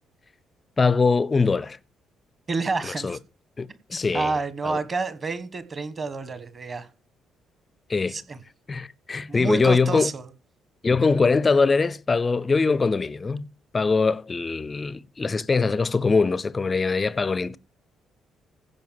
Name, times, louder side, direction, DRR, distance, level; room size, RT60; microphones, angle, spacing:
voice 1, 0.8-1.8 2.8-3.2 3.6-4.3 4.6-4.8 7.9-8.2 8.7-10.1 10.8-13.5 13.7-17.6, left 4 dB, 20° left, 0.5 m, -22 dB
voice 2, 2.5-3.2 3.9-6.9 8.1-8.4 9.3-10.3, right 4 dB, 25° right, 1.2 m, -29 dB
15.5 x 5.4 x 7.5 m
cardioid pair, 170°, 0 cm